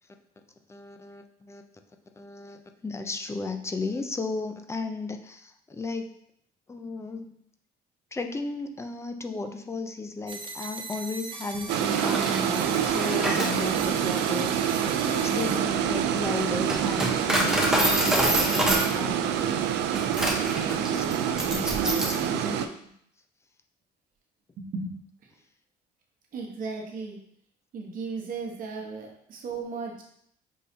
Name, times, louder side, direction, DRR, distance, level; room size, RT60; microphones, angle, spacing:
voice 1, 0.7-1.6 2.2-6.1 6.7-7.4 8.1-19.6 20.7-22.8, left 3 dB, 15° left, 7 dB, 0.4 m, -35 dB
sound 1, 10.3-15.6, right 3 dB, 30° right, 0.6 m, -40 dB
sound 2, 11.7-22.7, right 9 dB, 85° right, 0.4 m, -26 dB
Coin (dropping), 11.8-22.3, right 1 dB, 5° right, 0.9 m, -28 dB
voice 2, 24.6-25.0 26.3-27.2 27.7-30.0, right 4 dB, 55° right, 0 dB, 1.1 m, -35 dB
5.5 x 3.2 x 2.7 m, 0.69 s
cardioid pair, 110°, 17 cm